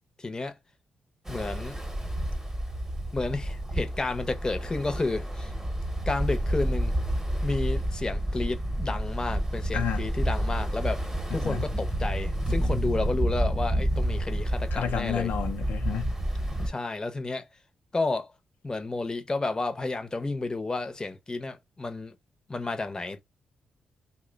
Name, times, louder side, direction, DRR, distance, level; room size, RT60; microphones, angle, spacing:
voice 1, 0.2-0.6 1.3-1.8 3.1-5.5 6.1-7.0 7.4-15.3 16.7-17.5 17.9-18.3 18.6-22.1 22.5-23.2, left 3 dB, 25° left, 0.6 m, -31 dB
Ocean, 1.2-16.7, right 1 dB, 15° right, 0.8 m, -29 dB
voice 2, 11.3-11.6 14.7-16.2, left 8 dB, 85° left, 0.5 m, -31 dB
2.8 x 2.1 x 3.8 m
cardioid pair, 85°, 3 cm